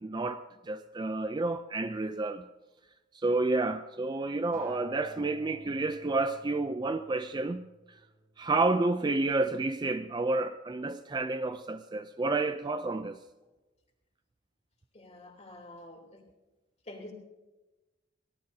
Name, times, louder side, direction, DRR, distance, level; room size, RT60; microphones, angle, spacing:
voice 1, 0.0-2.5 3.1-7.7 8.4-13.2, right 2 dB, 20° right, 0.4 m, -30 dB
Acoustic guitar, 4.5-8.8 9.7-9.8, right 2 dB, 45° right, 4.7 m, -52 dB
voice 2, 14.9-16.2 16.9-17.1, left 1 dB, 35° left, 3.2 m, -47 dB
23.5 x 18.0 x 2.7 m
head